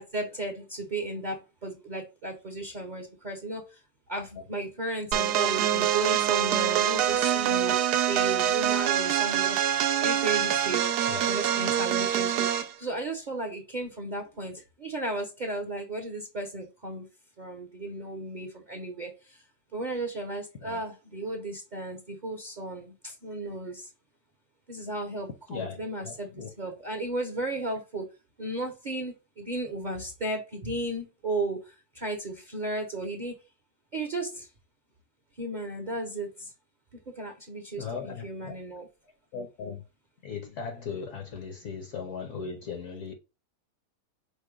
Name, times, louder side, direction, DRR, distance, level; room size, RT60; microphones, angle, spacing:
voice 1, 0.0-3.8 4.1-7.8 8.1-9.6 10.0-10.9 11.2-17.1 17.4-19.4 19.7-23.9 24.7-28.1 28.4-33.4 33.9-34.5 35.4-36.5 37.1-38.9, right 2 dB, 40° right, 0.7 m, -34 dB
sound 1, 5.1-12.7, right 10 dB, 80° right, 1.1 m, -25 dB
voice 2, 25.5-26.5 37.8-38.6 39.3-39.8 40.2-43.1, left 6 dB, 60° left, 1.0 m, -38 dB
5.2 x 2.1 x 4.8 m
omnidirectional pair, 1.7 m